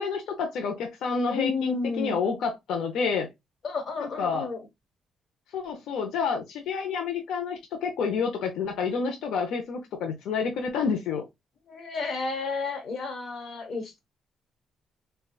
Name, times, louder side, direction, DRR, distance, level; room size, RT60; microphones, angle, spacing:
voice 1, 0.0-3.3 4.0-4.5 5.5-11.2, left 5 dB, 80° left, 0.6 m, -29 dB
voice 2, 1.3-2.2 3.6-4.6 11.7-14.0, left 4 dB, 55° left, 1.2 m, -31 dB
4.4 x 2.2 x 2.3 m
cardioid pair, 90°, 0 cm